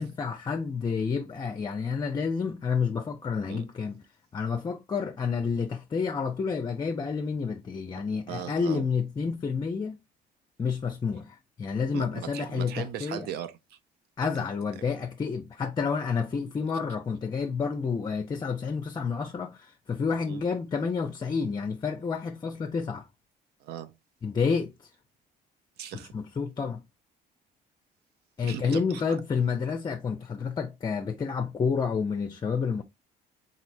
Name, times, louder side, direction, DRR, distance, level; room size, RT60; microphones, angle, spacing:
voice 1, 0.0-4.0 4.3-10.0 10.6-13.3 14.2-23.1 24.2-24.9 26.1-26.8 28.4-32.8, left 5 dB, 25° left, 0.5 m, -29 dB
voice 2, 8.3-8.8 11.9-13.8 20.3-20.4 23.6-23.9 25.8-26.1 28.4-29.0, right 10 dB, 75° right, 0.6 m, -38 dB
4.0 x 3.1 x 2.6 m
cardioid pair, 110°, 17 cm